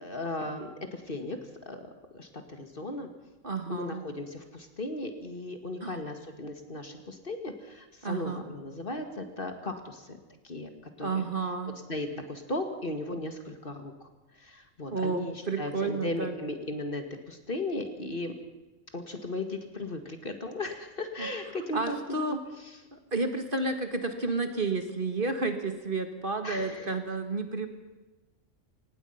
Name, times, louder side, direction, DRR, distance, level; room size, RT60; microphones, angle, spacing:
voice 1, 0.0-1.4 1.7-3.1 3.7-10.2 10.4-10.7 11.0-11.3 11.9-13.9 14.4-18.3 18.9-22.0 22.3-22.4 26.4-26.9, left 2 dB, 40° left, 6 dB, 2.2 m, -36 dB
voice 2, 3.4-4.0 5.8-6.0 8.0-8.4 11.0-11.7 14.9-16.4 21.2-21.3 21.7-22.4 22.9-27.7, right 3 dB, 40° right, 6 dB, 1.9 m, -31 dB
24.5 x 19.0 x 5.8 m, 1.1 s
omnidirectional pair, 1.4 m